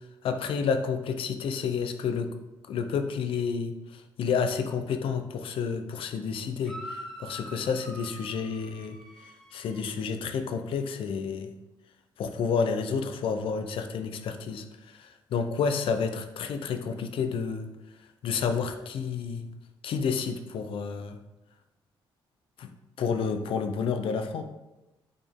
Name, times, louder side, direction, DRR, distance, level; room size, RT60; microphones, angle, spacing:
voice 1, 0.2-2.3 2.7-11.5 12.2-17.7 18.2-19.5 19.8-21.2 22.6-22.7 23.0-24.4, left 6 dB, 70° left, 8 dB, 0.7 m, -30 dB
sound 1, 6.6-9.9, equal, 5° left, 1.8 m, -44 dB
8.7 x 4.4 x 3.6 m, 1.0 s
cardioid pair, 125°, 9 cm